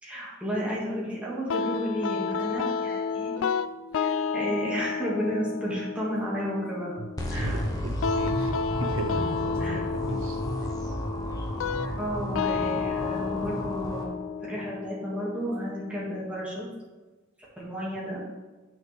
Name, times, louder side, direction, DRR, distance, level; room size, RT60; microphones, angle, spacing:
voice 1, 0.0-3.4 4.0-7.0 7.3-7.7 9.6-9.8 12.0-16.7 17.6-18.2, equal, 5° right, -7 dB, 2.1 m, -32 dB
sound 1, 1.5-16.4, left 5 dB, 75° left, 0.3 m, -32 dB
sound 2, 7.2-14.0, equal, 20° left, 1.0 m, -32 dB
voice 2, 7.4-8.5 8.8-10.4, right 2 dB, 80° right, 6 dB, 0.9 m, -36 dB
9.2 x 6.1 x 3.5 m, 1.2 s
head